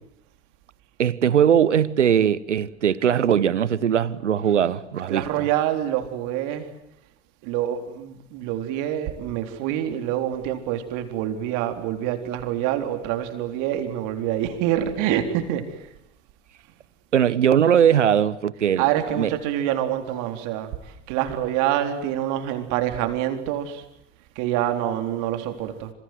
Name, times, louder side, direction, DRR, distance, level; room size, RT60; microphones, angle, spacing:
voice 1, 1.0-5.5 17.1-18.9 19.1-19.3, right 9 dB, 90° right, 1.2 m, -20 dB
voice 2, 5.1-6.7 7.4-15.9 18.8-20.7 21.1-23.8 24.4-25.9, right 11 dB, 60° right, 4.0 m, -26 dB
27.5 x 27.0 x 8.0 m
hypercardioid pair, 80°, 35 cm